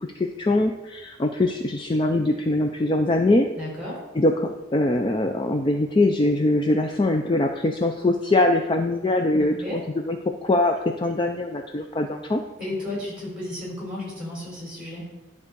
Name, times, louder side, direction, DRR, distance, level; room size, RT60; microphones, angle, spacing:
voice 1, 0.2-3.5 4.1-12.4, left 2 dB, 25° left, 4 dB, 0.4 m, -22 dB
voice 2, 3.6-4.0 9.3-9.8 12.6-15.3, left 1 dB, 5° right, -4 dB, 3.4 m, -33 dB
10.5 x 3.6 x 6.7 m, 1.1 s
head